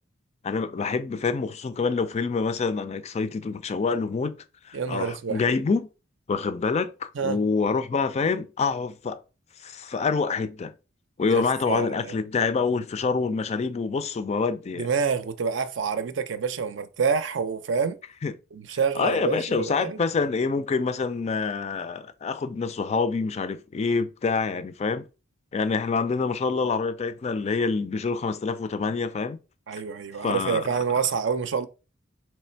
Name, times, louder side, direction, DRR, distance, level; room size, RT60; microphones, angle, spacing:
voice 1, 0.4-4.4 4.6-5.9 6.3-9.2 9.6-10.7 11.2-14.9 18.2-18.3 19.0-25.0 25.5-29.4 30.2-30.7, left 4 dB, 35° left, 0.4 m, -26 dB
voice 2, 4.7-5.4 7.2-7.4 11.3-12.2 14.8-18.0 18.5-20.0 29.7-31.7, right 6 dB, 65° right, 0.5 m, -27 dB
3.3 x 3.2 x 4.4 m
head